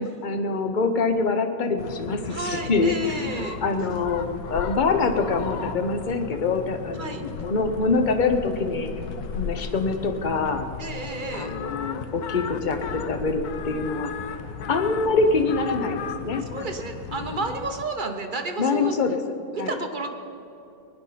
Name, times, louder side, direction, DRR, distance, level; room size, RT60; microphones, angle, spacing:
voice 1, 0.0-8.9 9.4-10.7 11.3-14.1 14.7-16.4 17.1-17.4 18.6-19.2 19.6-19.8, left 3 dB, 40° left, 6 dB, 0.7 m, -25 dB
sound 1, 1.8-17.8, left 7 dB, 90° left, 1.4 m, -36 dB
voice 2, 2.3-3.6 7.0-7.2 10.8-11.5 16.5-18.9 19.5-20.1, right 3 dB, 35° right, 4 dB, 0.9 m, -31 dB
20.0 x 10.0 x 5.7 m, 2.6 s
omnidirectional pair, 1.9 m